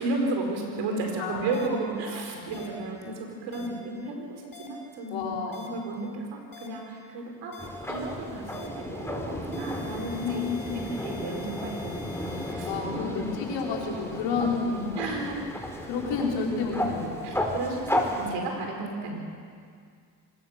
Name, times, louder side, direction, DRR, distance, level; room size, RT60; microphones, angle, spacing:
voice 1, 0.0-5.2 5.5-13.1 14.9-15.4 17.2-19.2, right 3 dB, 85° right, 2 dB, 4.8 m, -33 dB
voice 2, 1.2-1.5 2.1-2.5 3.6-3.7 5.1-5.7 10.1-10.8 12.6-14.9 15.8-17.2 18.1-18.3, left 4 dB, 85° left, -1 dB, 4.6 m, -30 dB
sound 1, 1.5-1.7 2.5-2.7 3.5-3.7 4.5-4.7 5.5-5.7 6.5-6.7 7.5-7.7 8.5-8.7 9.5-12.5, left 5 dB, 50° left, 6.9 m, -46 dB
sound 2, 7.6-18.3, left 1 dB, 5° left, 4.2 m, -34 dB
25.0 x 20.0 x 6.8 m, 2.2 s
supercardioid pair, 65°, 43 cm